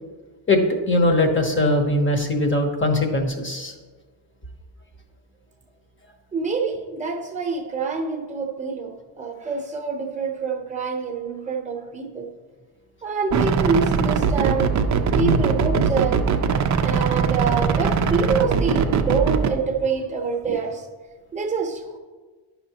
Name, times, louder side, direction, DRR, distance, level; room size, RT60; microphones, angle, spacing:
voice 1, 0.5-3.7 15.2-15.4, left 1 dB, 25° left, 3 dB, 0.9 m, -21 dB
voice 2, 6.3-12.3 13.0-14.8 15.1-16.2 16.8-20.9 21.3-22.0, right 5 dB, 15° right, 2 dB, 0.8 m, -26 dB
sound 1, 13.3-19.5, right 6 dB, 40° right, 0.4 m, -21 dB
10.0 x 5.7 x 2.9 m, 1.4 s
cardioid pair, 135°, 48 cm